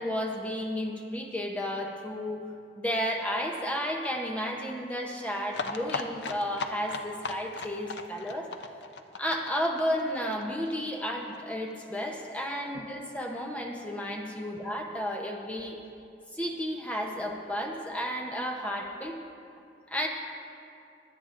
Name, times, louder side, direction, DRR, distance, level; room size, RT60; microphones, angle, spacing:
voice 1, 0.0-2.4 2.8-8.5 9.2-15.8 16.3-19.1 19.9-20.1, equal, 10° left, 1 dB, 0.7 m, -32 dB
sound 1, 5.5-11.1 11.3-11.4 11.7-11.8 12.0-12.1, left 4 dB, 70° left, 0.5 m, -37 dB
22.5 x 8.6 x 2.5 m, 2.5 s
head